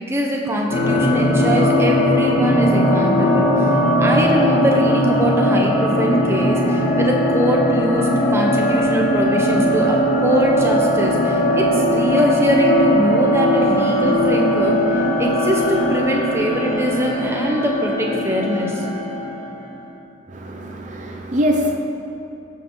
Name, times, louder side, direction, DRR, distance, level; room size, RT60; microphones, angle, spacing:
voice 1, 0.1-3.5 4.0-18.8, equal, 15° right, 0 dB, 1.0 m, -22 dB
sound 1, 0.7-19.6, equal, 40° left, 2.0 m, -19 dB
voice 2, 20.3-21.8, equal, 35° right, 2 dB, 0.6 m, -23 dB
15.0 x 7.4 x 3.9 m, 2.9 s
head